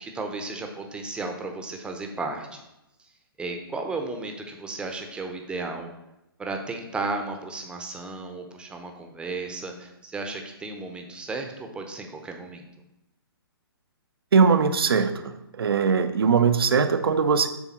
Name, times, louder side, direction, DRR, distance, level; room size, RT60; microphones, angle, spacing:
voice 1, 0.0-2.6 3.4-5.9 6.4-12.7, right 3 dB, 5° right, 3 dB, 0.7 m, -34 dB
voice 2, 14.3-17.5, right 5 dB, 70° right, 10 dB, 0.7 m, -21 dB
7.2 x 3.6 x 5.7 m, 0.91 s
hypercardioid pair, 130°, 13 cm